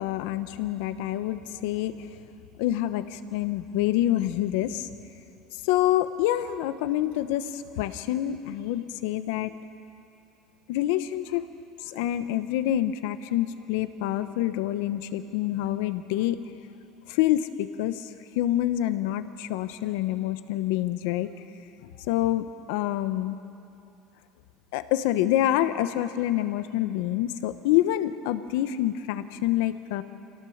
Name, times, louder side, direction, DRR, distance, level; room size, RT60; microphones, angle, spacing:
voice 1, 0.0-2.1 2.6-4.9 5.6-9.5 10.7-11.5 11.8-16.4 17.1-21.3 21.8-23.4 24.7-30.0, left 13 dB, 80° left, 11 dB, 1.0 m, -27 dB
24.5 x 17.5 x 7.3 m, 2.6 s
supercardioid pair, 120°, 0 cm